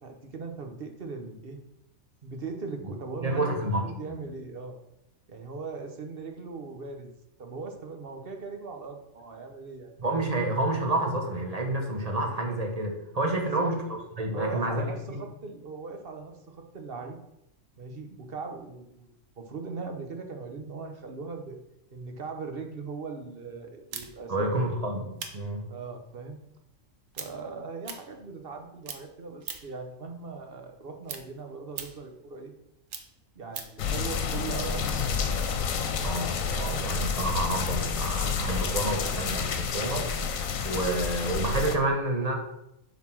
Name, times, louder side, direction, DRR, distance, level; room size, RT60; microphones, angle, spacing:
voice 1, 0.0-1.6 2.2-4.8 5.3-7.1 7.4-9.9 13.3-13.7 14.3-17.2 17.8-19.1 19.4-21.6 21.9-24.6 25.7-26.4 27.2-32.5 33.3-35.3, right 4 dB, 50° right, 5 dB, 1.2 m, -39 dB
voice 2, 3.2-4.2 10.0-15.2 24.3-25.7 36.0-42.3, right 2 dB, 30° right, 2 dB, 1.3 m, -29 dB
sound 1, 23.9-28.6 28.8-29.9 30.2-33.8, right 6 dB, 80° right, 1.3 m, -42 dB
sound 2, 33.8-41.8, left 5 dB, 90° left, 1.3 m, -29 dB
7.5 x 4.1 x 6.0 m, 0.82 s
omnidirectional pair, 1.4 m